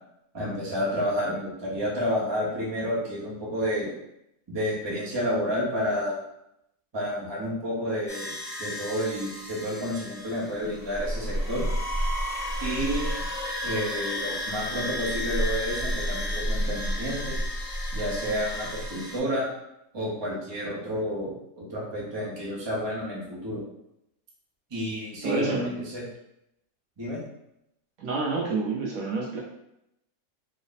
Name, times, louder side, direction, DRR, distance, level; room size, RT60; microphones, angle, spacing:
voice 1, 0.3-3.9 4.5-6.2 6.9-8.3 8.6-11.6 12.6-13.2 13.6-17.4 17.9-19.5 19.9-23.6 24.7-26.0 27.0-27.2, equal, 20° right, -6 dB, 0.8 m, -30 dB
sound 1, 8.1-19.2, equal, 25° left, 1.2 m, -31 dB
voice 2, 25.2-25.8 28.0-29.4, right 3 dB, 65° right, -3 dB, 1.0 m, -28 dB
3.3 x 2.1 x 4.0 m, 0.82 s
omnidirectional pair, 1.7 m